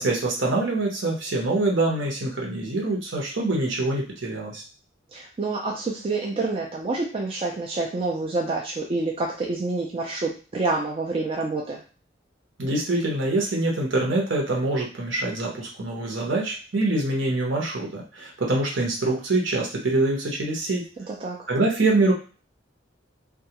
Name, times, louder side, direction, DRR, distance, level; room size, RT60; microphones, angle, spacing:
voice 1, 0.0-4.6 12.6-20.8 21.5-22.1, right 2 dB, 70° right, -2 dB, 0.9 m, -25 dB
voice 2, 5.1-11.8 21.1-21.5, right 3 dB, 30° right, -1 dB, 0.4 m, -28 dB
2.3 x 2.2 x 2.8 m, 0.37 s
head